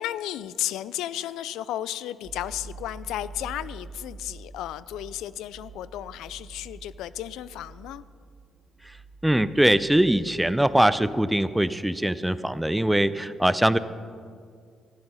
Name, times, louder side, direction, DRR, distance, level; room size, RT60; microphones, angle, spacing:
voice 1, 0.0-8.0, left 12 dB, 90° left, 17 dB, 0.3 m, -34 dB
sound 1, 2.2-11.3 11.5-11.7, right 3 dB, 40° right, 1.0 m, -46 dB
voice 2, 9.2-13.8, right 1 dB, 5° right, 14 dB, 0.4 m, -22 dB
12.0 x 10.5 x 5.5 m, 2.1 s
cardioid pair, 90°, 0 cm